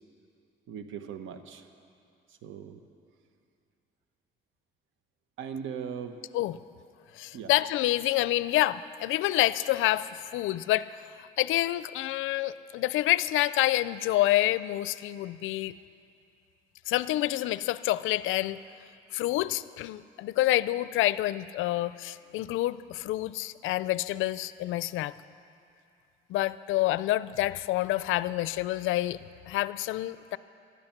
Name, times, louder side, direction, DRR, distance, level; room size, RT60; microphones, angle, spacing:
voice 1, 0.7-1.6 2.4-2.8 5.4-6.2 7.3-7.5, right 7 dB, 85° right, 8 dB, 1.1 m, -38 dB
voice 2, 7.2-15.7 16.9-18.6 19.1-25.1 26.3-30.4, left 15 dB, 90° left, 17 dB, 0.4 m, -28 dB
18.0 x 12.5 x 5.9 m, 2.6 s
cardioid pair, 90°, 20 cm